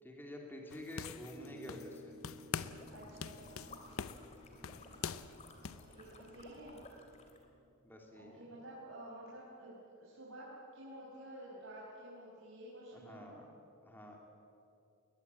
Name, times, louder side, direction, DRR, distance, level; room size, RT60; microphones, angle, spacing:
voice 1, 0.0-2.1 4.6-4.9 7.8-8.4 12.9-13.5 13.8-14.2, left 1 dB, 10° left, 0 dB, 3.0 m, -49 dB
sound 1, 0.7-2.0 2.2-2.9 3.2-5.9, left 6 dB, 75° left, 0.8 m, -43 dB
sound 2, 1.3-7.7, equal, 45° right, 2.7 m, -58 dB
sound 3, 2.6-7.5, left 2 dB, 30° left, 2.6 m, -57 dB
voice 2, 2.9-3.8 5.7-6.8 8.2-13.3, right 1 dB, 65° right, -7 dB, 5.7 m, -51 dB
21.0 x 21.0 x 8.4 m, 2.7 s
head